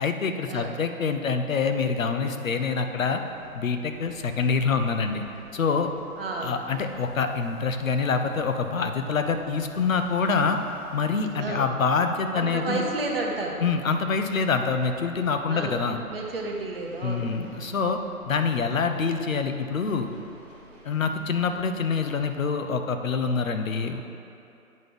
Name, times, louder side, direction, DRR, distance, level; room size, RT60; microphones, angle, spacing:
voice 1, 0.0-3.2 3.5-5.2 5.5-5.9 6.4-10.6 10.9-12.8 13.6-16.0 17.0-18.0 18.3-20.1 20.8-24.0, left 5 dB, 60° left, 7 dB, 0.7 m, -26 dB
sound 1, 3.0-22.4, right 1 dB, 10° right, 0.9 m, -50 dB
voice 2, 6.2-6.5 11.4-11.7 12.3-13.6 15.5-17.3, right 2 dB, 40° right, -1 dB, 1.0 m, -31 dB
8.6 x 4.2 x 5.2 m, 2.7 s
figure-of-eight pair, 155°, 44 cm